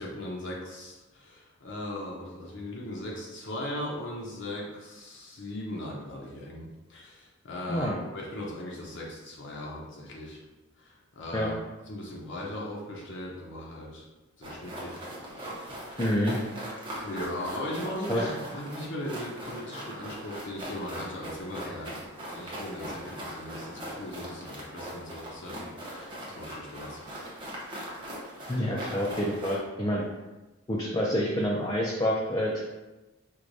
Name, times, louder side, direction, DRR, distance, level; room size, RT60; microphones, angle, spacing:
voice 1, 0.0-10.4 10.8-11.6 11.9-14.1 14.4-15.0 15.5-16.0 17.0-22.0 22.3-27.1, left 1 dB, 60° left, -3 dB, 0.6 m, -38 dB
sound 1, 14.4-29.6, equal, 25° right, 0.7 m, -40 dB
voice 2, 16.0-16.4 18.1-18.2 28.5-30.0 30.7-32.6, equal, 20° left, -4 dB, 0.3 m, -27 dB
4.6 x 2.1 x 2.6 m, 1.1 s
head